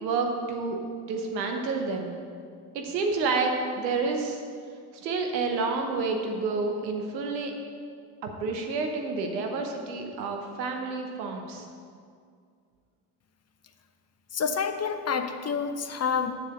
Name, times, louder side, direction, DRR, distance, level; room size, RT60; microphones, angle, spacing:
voice 1, 0.0-0.8 1.1-2.1 2.7-4.4 4.9-7.5 8.4-11.6, right 4 dB, 85° right, 3 dB, 1.0 m, -29 dB
voice 2, 14.3-16.3, left 6 dB, 30° left, 8 dB, 0.7 m, -28 dB
7.3 x 6.5 x 6.4 m, 2.2 s
hypercardioid pair, 45°, 50 cm